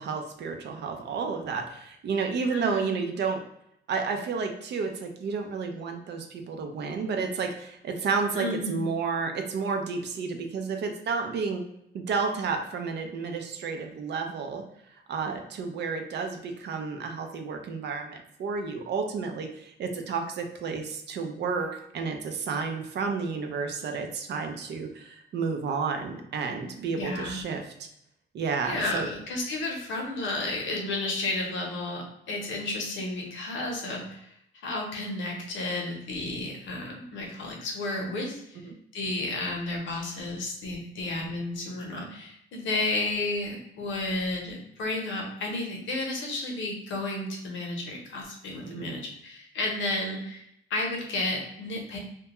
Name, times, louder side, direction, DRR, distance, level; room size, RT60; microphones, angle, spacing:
voice 1, 0.0-3.4 3.9-11.6 11.9-14.6 15.1-27.9 28.3-29.1 38.6-38.7 48.7-49.0, right 5 dB, 60° right, 4 dB, 0.5 m, -31 dB
voice 2, 2.5-3.0 8.3-8.9 27.0-27.4 28.6-34.3 34.6-38.7 38.9-52.0, left 2 dB, 75° left, 0 dB, 0.8 m, -32 dB
2.2 x 2.2 x 2.9 m, 0.75 s
cardioid pair, 90°, 20 cm